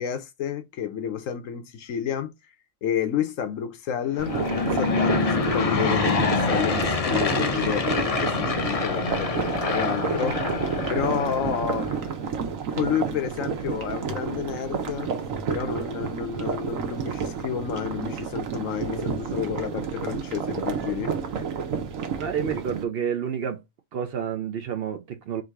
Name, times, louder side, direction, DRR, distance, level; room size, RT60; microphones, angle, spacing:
voice 1, 0.0-2.3 2.8-10.6 10.9-11.9 12.7-15.1 15.5-21.1, left 8 dB, 80° left, 1.2 m, -30 dB
Aircraft / Engine, 4.1-12.1, left 4 dB, 50° left, 0.4 m, -26 dB
sound 1, 4.2-22.8, right 6 dB, 85° right, 1.2 m, -30 dB
voice 2, 22.2-23.6 23.9-25.4, right 8 dB, 60° right, 0.7 m, -29 dB
3.8 x 2.6 x 4.5 m
omnidirectional pair, 1.4 m